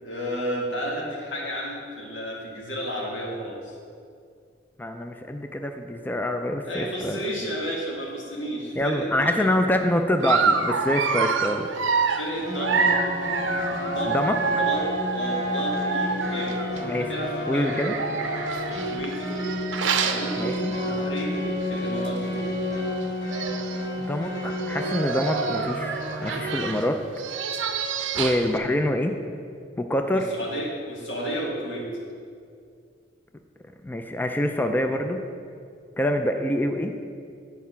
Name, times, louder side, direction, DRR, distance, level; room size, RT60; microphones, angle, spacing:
voice 1, 0.0-3.8 6.6-9.5 12.1-12.8 13.5-14.2 14.6-14.8 15.1-16.6 17.0-17.8 18.7-19.3 19.8-22.3 30.1-31.9, equal, 90° left, -3 dB, 1.8 m, -32 dB
voice 2, 4.8-7.2 8.8-12.2 14.1-14.4 16.8-17.1 17.5-17.9 20.4-20.7 24.0-27.0 28.2-29.1 29.8-30.3 33.8-35.2 36.0-36.9, left 1 dB, 10° left, 5 dB, 0.3 m, -26 dB
Dog, 10.2-16.8 17.6-21.2 21.6-21.8 22.1-22.2 23.0-23.1 23.3-23.9 24.5-28.6, right 5 dB, 85° right, 0.5 m, -27 dB
sound 1, 12.4-26.5, left 1 dB, 70° left, 2.2 m, -31 dB
9.3 x 4.7 x 5.6 m, 2.3 s
head